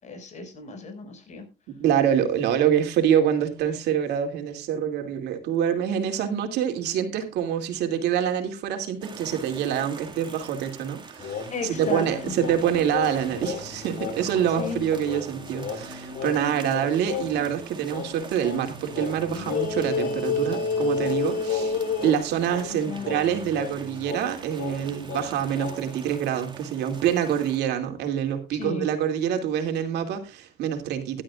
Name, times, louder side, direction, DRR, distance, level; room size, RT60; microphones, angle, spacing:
voice 1, 0.0-1.5 11.5-12.3 14.6-14.8 22.7-23.1 28.5-28.9, left 4 dB, 45° left, 6 dB, 5.7 m, -35 dB
voice 2, 1.8-31.2, right 9 dB, 80° right, 5 dB, 2.6 m, -26 dB
sound 1, 9.0-27.6, right 4 dB, 25° right, 2.1 m, -44 dB
sound 2, 11.2-17.5 17.9-26.0, left 5 dB, 70° left, 4.2 m, -32 dB
16.0 x 12.0 x 2.4 m, 0.27 s
cardioid pair, 110°, 17 cm